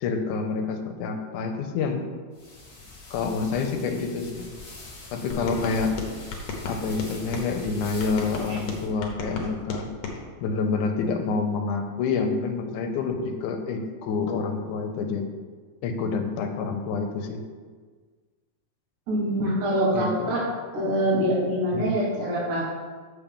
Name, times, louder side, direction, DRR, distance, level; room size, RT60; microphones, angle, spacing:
voice 1, 0.0-2.0 3.1-4.5 5.1-6.0 6.7-9.9 10.4-15.3 15.8-17.4 19.9-20.4 21.7-22.0, left 4 dB, 80° left, 5 dB, 2.1 m, -28 dB
sound 1, 2.3-8.9, left 2 dB, 25° left, 1.7 m, -43 dB
sound 2, 5.3-7.5 8.0-10.2, left 3 dB, 65° left, 2.0 m, -34 dB
voice 2, 19.1-20.5 20.7-22.6, equal, 80° right, -4 dB, 3.1 m, -25 dB
7.2 x 7.0 x 3.6 m, 1.5 s
omnidirectional pair, 3.5 m